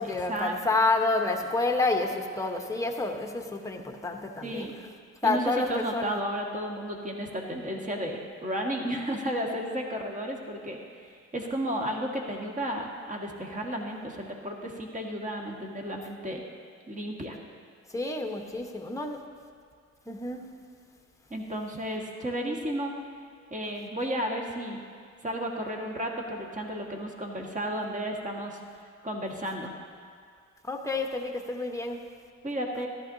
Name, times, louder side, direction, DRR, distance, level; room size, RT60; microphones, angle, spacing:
voice 1, 0.0-4.7 5.2-6.2 17.9-19.2 20.1-20.5 30.6-32.0, left 3 dB, 10° left, 2 dB, 1.1 m, -29 dB
voice 2, 4.4-4.8 5.2-16.4 16.9-17.4 21.3-22.9 23.5-24.8 25.2-28.6 29.0-29.7 32.4-32.9, equal, 25° right, 0 dB, 1.7 m, -33 dB
14.5 x 12.0 x 2.8 m, 2.2 s
cardioid pair, 90°, 30 cm